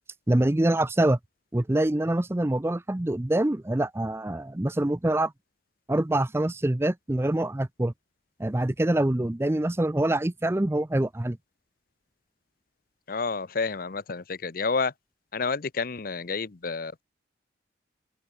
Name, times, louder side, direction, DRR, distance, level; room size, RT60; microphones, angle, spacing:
voice 1, 0.3-1.2 1.5-5.3 5.9-7.9 8.4-11.4, right 1 dB, 15° right, 0.5 m, -25 dB
voice 2, 13.1-14.9 15.3-17.0, left 4 dB, 50° left, 0.7 m, -29 dB
open air
head